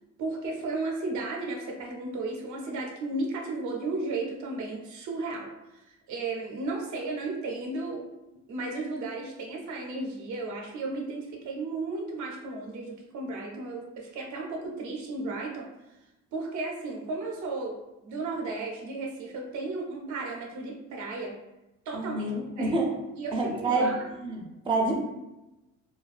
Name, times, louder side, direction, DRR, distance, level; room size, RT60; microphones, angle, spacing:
voice 1, 0.2-8.0 8.5-15.7 16.3-17.8 18.0-21.3 21.9-22.3 22.6-22.8 23.2-24.0, right 3 dB, 75° right, 0 dB, 0.6 m, -34 dB
voice 2, 21.9-22.9 23.3-25.0, right 2 dB, 15° right, 0 dB, 0.5 m, -28 dB
2.3 x 2.2 x 2.4 m, 0.98 s
cardioid pair, 90°, 30 cm